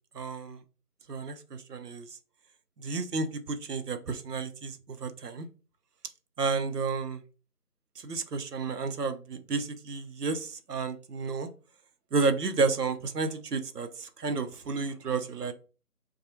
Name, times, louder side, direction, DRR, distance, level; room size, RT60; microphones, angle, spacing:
voice 1, 0.1-0.6 1.1-2.1 2.8-5.5 6.4-7.2 8.0-11.5 12.1-15.5, right 4 dB, 80° right, 9 dB, 0.6 m, -31 dB
2.7 x 2.2 x 2.8 m, 0.35 s
figure-of-eight pair, 165°, 47 cm